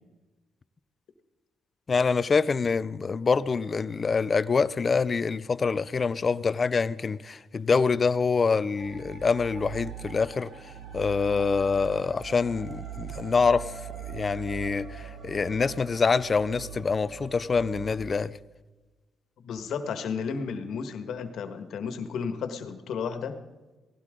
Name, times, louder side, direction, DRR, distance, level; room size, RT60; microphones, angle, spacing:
voice 1, 1.9-10.5 10.9-13.7 14.1-18.4, left 5 dB, 35° left, 0.5 m, -25 dB
sound 1, 8.8-18.0, right 8 dB, 60° right, 5.0 m, -41 dB
voice 2, 19.4-23.3, left 6 dB, 70° left, 1.6 m, -33 dB
18.0 x 16.0 x 3.8 m
cardioid pair, 90°, 0 cm